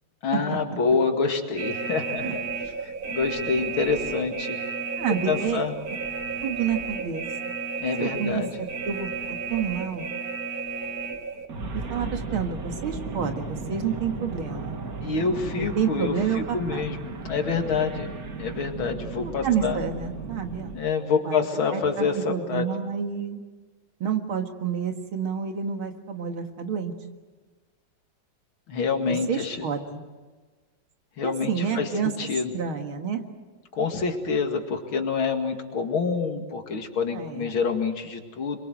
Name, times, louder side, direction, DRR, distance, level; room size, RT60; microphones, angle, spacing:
voice 1, 0.2-2.4 2.8-4.6 5.3-5.7 7.8-8.5 15.0-16.1 16.5-19.8 20.7-22.6 28.7-29.7 31.2-31.9 32.2-32.5 33.7-38.6, left 5 dB, 75° left, 4 dB, 2.9 m, -27 dB
sound 1, 1.6-20.8, right 4 dB, 45° right, 2.0 m, -33 dB
voice 2, 5.0-5.6 6.4-7.5 8.0-8.4 8.8-9.1 9.5-10.1 11.7-14.7 15.6-16.9 19.2-20.7 21.2-21.4 21.7-23.4 24.0-26.9 29.1-30.0 31.2-32.1 32.5-33.2 37.1-37.5, right 7 dB, 80° right, 5 dB, 2.6 m, -29 dB
27.0 x 23.0 x 7.8 m, 1.4 s
omnidirectional pair, 2.3 m